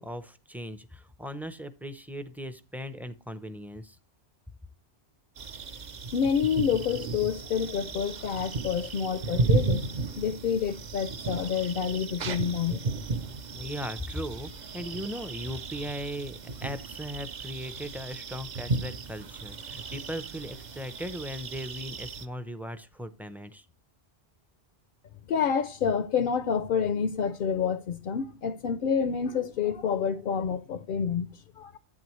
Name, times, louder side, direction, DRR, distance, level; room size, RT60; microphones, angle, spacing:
voice 1, 0.0-4.0 13.5-23.7, equal, ahead, 0.5 m, -38 dB
sound 1, 5.4-22.3, right 4 dB, 50° right, 0.7 m, -34 dB
voice 2, 6.1-9.9 10.2-12.8 25.3-31.8, left 7 dB, 60° left, 0.7 m, -28 dB
11.0 x 8.8 x 3.1 m
omnidirectional pair, 1.1 m